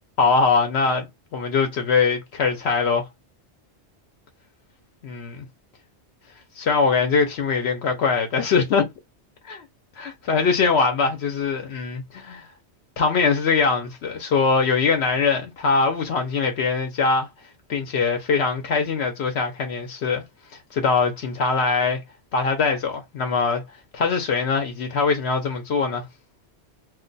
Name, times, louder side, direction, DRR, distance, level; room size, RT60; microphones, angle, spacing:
voice 1, 0.2-1.1 1.3-3.1 5.0-5.5 6.6-8.9 9.5-9.6 10.0-12.5 13.0-17.3 17.7-20.2 20.7-22.0 22.3-23.6 23.9-26.1, left 4 dB, 75° left, 0.9 m, -22 dB
2.4 x 2.2 x 3.8 m
omnidirectional pair, 1.1 m